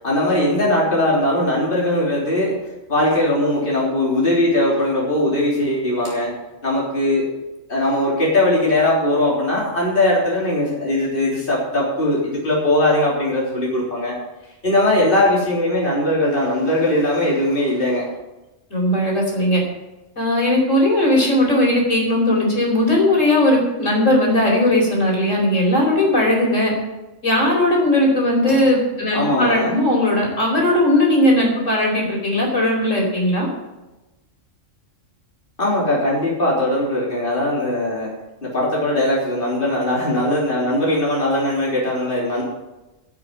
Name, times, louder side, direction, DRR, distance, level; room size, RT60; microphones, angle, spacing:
voice 1, 0.0-7.4 7.7-14.2 14.6-18.1 28.4-28.7 29.1-29.8 35.6-38.1 38.4-42.4, left 1 dB, 45° left, -5 dB, 3.9 m, -20 dB
voice 2, 18.7-19.6 20.2-26.7 27.2-33.5, left 1 dB, 75° left, -1 dB, 4.9 m, -18 dB
16.0 x 7.1 x 7.6 m, 1.0 s
omnidirectional pair, 1.3 m